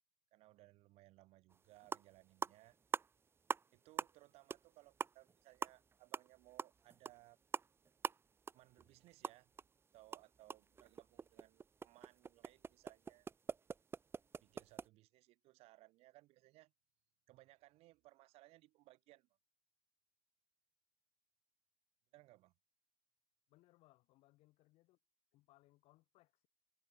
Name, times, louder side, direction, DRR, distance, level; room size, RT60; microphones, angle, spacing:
voice 1, 0.3-2.8 3.7-7.4 8.5-9.5 9.9-13.3 14.4-16.7 17.3-19.3 22.1-22.5, right 18 dB, 60° right, 4.4 m, -64 dB
sound 1, 1.5-1.6 1.8-2.1 2.4-3.7 4.0-4.2 4.5-4.7 5.0-9.7 9.9-14.9, right 5 dB, 20° right, 0.7 m, -44 dB
voice 2, 23.5-25.0 25.3-26.5, left 19 dB, 65° left, 7.2 m, -70 dB
cardioid pair, 125°, 11 cm